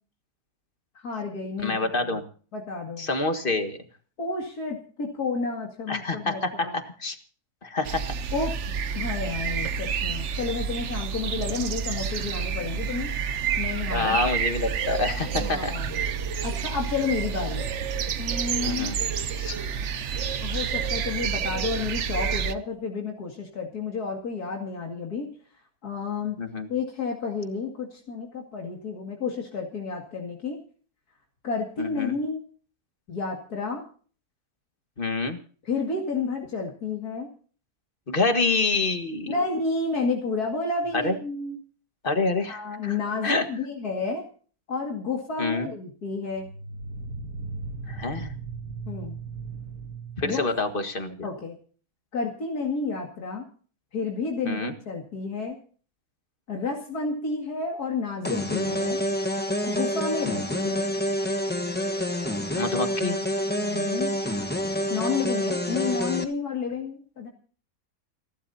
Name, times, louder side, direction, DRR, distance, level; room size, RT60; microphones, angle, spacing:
voice 1, 1.0-2.2 2.5-3.1 4.2-6.7 8.3-8.5 8.9-13.1 13.6-14.2 15.4-16.0 16.4-17.7 18.2-18.9 20.4-25.3 25.8-26.4 26.7-30.6 31.4-32.4 33.1-33.8 35.6-37.3 39.3-41.6 42.5-44.3 44.7-46.5 48.9-49.2 50.2-50.4 51.2-51.6 52.1-53.4 53.9-55.6 56.5-59.0 59.7-60.9 63.6-64.1 64.9-67.3, left 4 dB, 85° left, 1 dB, 2.8 m, -31 dB
voice 2, 1.6-2.2 3.0-3.8 5.9-7.2 7.6-8.2 13.9-15.8 18.6-19.0 19.4-19.6 26.4-26.7 31.8-32.1 35.0-35.4 38.1-39.3 40.9-41.2 42.0-43.5 45.4-45.7 47.9-48.4 50.2-51.3 54.5-54.7 62.5-63.2, left 3 dB, 35° left, 7 dB, 1.8 m, -27 dB
sound 1, 7.8-22.5, right 7 dB, 55° right, 1.0 m, -29 dB
sound 2, 40.8-40.9 46.3-50.8, right 4 dB, 80° right, 1.7 m, -37 dB
sound 3, 58.2-66.2, equal, 5° left, 1.1 m, -28 dB
29.5 x 12.0 x 2.8 m, 0.42 s
omnidirectional pair, 1.6 m